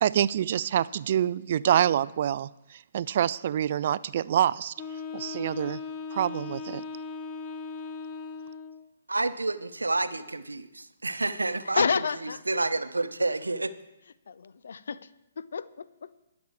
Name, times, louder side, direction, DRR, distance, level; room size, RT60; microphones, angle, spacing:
voice 1, 0.0-4.7 5.1-5.8 6.1-6.8, right 10 dB, 50° right, 19 dB, 0.4 m, -26 dB
Wind instrument woodwind instrument, 4.8-8.9, left 5 dB, 25° left, 1.0 m, -38 dB
voice 2, 9.1-11.9 12.2-13.7, right 2 dB, 80° right, 12 dB, 0.8 m, -29 dB
voice 3, 11.8-12.4 14.3-15.0 15.4-15.9, left 6 dB, 60° left, 16 dB, 0.6 m, -29 dB
20.5 x 7.2 x 4.8 m, 0.94 s
figure-of-eight pair, 130°, 0 cm